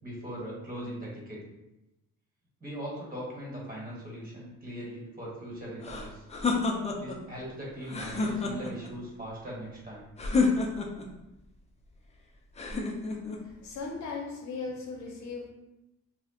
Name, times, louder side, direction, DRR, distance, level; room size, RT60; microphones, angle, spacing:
voice 1, 0.0-1.4 2.6-6.2 7.0-10.1, equal, 30° right, -4 dB, 1.2 m, -40 dB
sound 1, 5.8-7.2 7.8-8.9 10.2-11.1 12.6-13.4, left 4 dB, 20° left, 0.4 m, -29 dB
voice 2, 13.4-15.5, left 4 dB, 65° left, 0 dB, 0.7 m, -38 dB
2.4 x 2.1 x 3.6 m, 0.93 s
cardioid pair, 90°, 30 cm